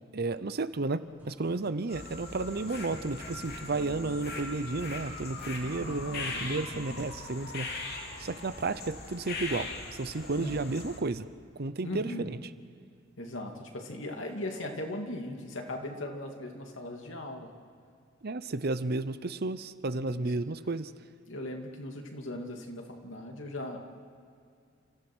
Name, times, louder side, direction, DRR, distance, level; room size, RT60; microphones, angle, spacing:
voice 1, 0.1-7.7 8.2-11.3 11.6-12.4 18.2-20.9, right 3 dB, 55° right, 13 dB, 0.8 m, -32 dB
sound 1, 1.2-7.3, left 1 dB, 10° right, 3.8 m, -51 dB
sound 2, 1.9-11.0, left 3 dB, 55° left, 2.9 m, -40 dB
voice 2, 5.8-7.0 10.4-10.7 11.8-12.3 13.2-17.5 19.9-20.3 21.3-23.8, left 1 dB, 75° left, 2 dB, 2.7 m, -39 dB
30.0 x 15.0 x 6.3 m, 2.3 s
head